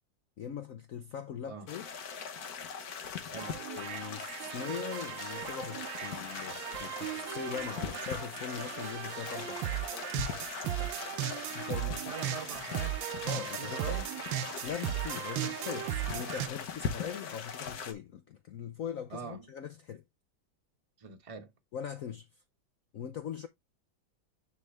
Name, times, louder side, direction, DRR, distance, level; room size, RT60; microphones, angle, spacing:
voice 1, 0.4-1.9 3.7-9.8 11.5-12.0 13.2-14.0 14.6-20.0 21.7-22.4 22.9-23.5, left 8 dB, 75° left, 0.7 m, -41 dB
sound 1, 1.7-17.9, left 6 dB, 55° left, 1.4 m, -41 dB
sound 2, 3.4-16.5, right 13 dB, 75° right, 1.3 m, -37 dB
sound 3, 5.4-15.0, left 3 dB, 35° left, 1.1 m, -59 dB
voice 2, 11.8-13.0 13.3-14.0 19.1-19.4 21.0-21.5, right 5 dB, 25° right, 0.8 m, -43 dB
9.8 x 3.5 x 3.3 m
omnidirectional pair, 2.2 m